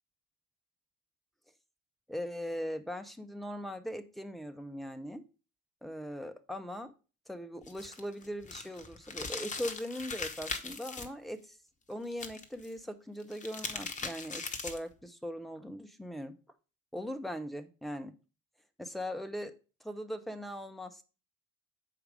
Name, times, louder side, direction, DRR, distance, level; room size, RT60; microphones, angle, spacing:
voice 1, 2.1-5.2 5.8-6.9 7.3-11.6 11.9-16.3 16.9-18.1 18.8-19.5 19.8-21.0, equal, ahead, 7 dB, 0.5 m, -40 dB
sound 1, 7.6-11.1 12.1-12.7 13.2-14.9, left 4 dB, 15° left, 0.9 m, -40 dB
7.4 x 4.7 x 4.8 m, 0.34 s
figure-of-eight pair, 65°, 43 cm